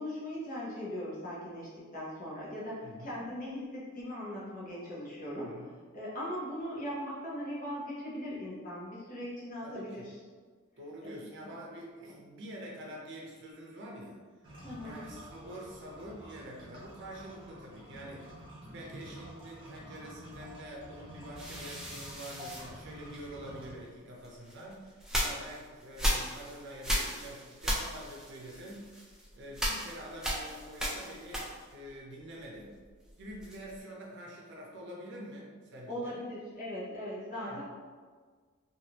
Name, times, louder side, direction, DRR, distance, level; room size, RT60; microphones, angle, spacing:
voice 1, 0.0-5.5 5.9-10.0 11.0-11.5 14.6-15.0 35.9-37.6, equal, 35° left, -7 dB, 0.9 m, -39 dB
voice 2, 2.8-3.2 5.3-5.8 9.6-10.1 10.8-14.2 14.5-18.3 18.6-29.1 29.3-32.7 33.2-36.2 37.3-37.6, right 1 dB, 55° right, -3 dB, 0.6 m, -46 dB
sound 1, 14.4-23.7, equal, 25° right, 0.9 m, -49 dB
sound 2, 21.4-23.6 24.2-31.9 32.2-33.8, equal, 5° right, 0.4 m, -36 dB
3.3 x 2.4 x 2.9 m, 1.5 s
head